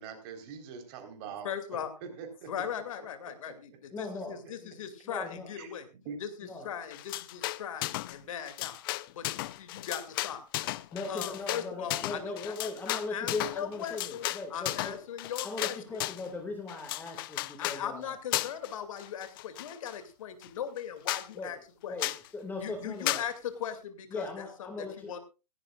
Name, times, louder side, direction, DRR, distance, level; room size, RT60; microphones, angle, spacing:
voice 1, 0.0-1.5 2.0-2.6 3.4-3.5 5.6-5.7 6.1-6.2, right 6 dB, 35° right, 6 dB, 4.0 m, -43 dB
voice 2, 1.4-1.9 2.5-3.7 4.0-5.8 6.2-8.8 9.1-10.4 11.1-12.4 12.6-14.3 14.5-16.0 17.6-21.6 21.8-22.0 22.6-23.3 23.6-24.4 24.8-25.2, left 8 dB, 55° left, 9 dB, 2.6 m, -39 dB
voice 3, 3.9-4.7 5.0-5.5 6.4-6.7 10.9-15.0 15.4-18.2 21.3-23.3 24.1-25.2, left 3 dB, 10° left, 4 dB, 2.1 m, -39 dB
sound 1, 6.9-8.2 8.4-16.3 16.7-17.8 18.3-18.7 19.0-20.0 20.4-20.5 20.8-20.9 21.1-21.3 22.0-22.3 23.1-23.3, left 18 dB, 35° left, 0.6 m, -35 dB
16.5 x 16.5 x 2.4 m, 0.30 s
hypercardioid pair, 130°, 21 cm